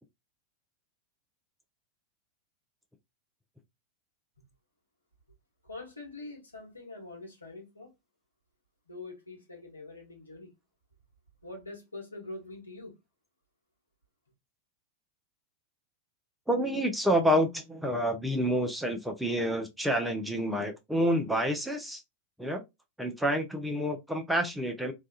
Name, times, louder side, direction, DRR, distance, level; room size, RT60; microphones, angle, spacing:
voice 1, 5.6-7.9 8.9-10.5 11.4-13.0, left 2 dB, 80° left, 1.1 m, -44 dB
voice 2, 16.5-22.0 22.4-22.6 23.0-24.9, equal, 5° right, 0.6 m, -28 dB
2.7 x 2.3 x 2.3 m
figure-of-eight pair, 90°, 0 cm